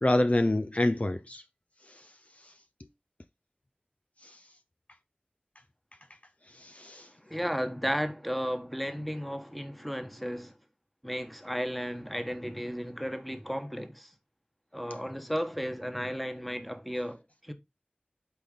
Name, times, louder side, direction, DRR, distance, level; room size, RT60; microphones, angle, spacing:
voice 1, 0.0-1.4 1.9-2.1 2.4-2.5 4.2-4.4 6.5-7.1, left 1 dB, 45° left, 0.6 m, -28 dB
voice 2, 7.3-10.5 11.0-14.1 14.7-17.5, equal, ahead, 1.3 m, -34 dB
8.4 x 4.3 x 4.1 m
wide cardioid pair, 40°, 3 cm